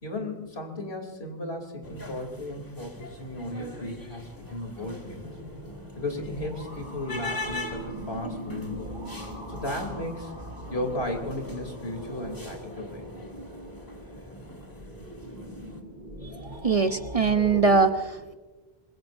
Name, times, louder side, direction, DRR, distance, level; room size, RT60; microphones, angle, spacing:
voice 1, 0.0-5.3 6.0-8.9 9.5-10.3 10.7-13.0, left 1 dB, 75° left, 3 dB, 3.5 m, -35 dB
sound 1, 1.8-15.8, left 2 dB, 20° left, 2.0 m, -42 dB
sound 2, 5.2-17.7, right 1 dB, 55° right, 3.8 m, -41 dB
voice 2, 16.6-18.3, right 4 dB, 40° right, 8 dB, 0.8 m, -22 dB
25.0 x 21.5 x 2.6 m, 1.3 s
omnidirectional pair, 1.1 m